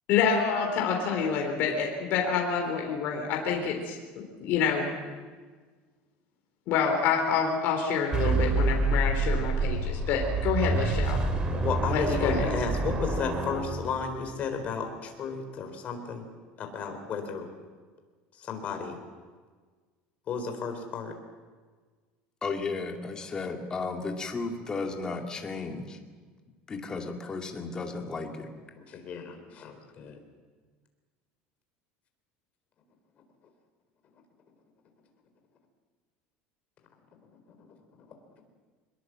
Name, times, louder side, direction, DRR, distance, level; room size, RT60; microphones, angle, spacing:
voice 1, 0.1-4.9 6.7-11.2 11.9-12.4, left 6 dB, 55° left, 1 dB, 3.6 m, -27 dB
sound 1, 8.1-14.3, right 3 dB, 20° right, 2.9 m, -27 dB
voice 2, 11.5-16.2 16.6-17.5 18.3-19.0 20.3-21.1 28.8-30.2 38.1-38.2, left 5 dB, 35° left, 5 dB, 4.0 m, -34 dB
voice 3, 22.4-26.0 26.7-28.5, left 4 dB, 20° left, 3 dB, 2.3 m, -34 dB
23.5 x 21.0 x 7.6 m, 1.5 s
cardioid pair, 155°, 4 cm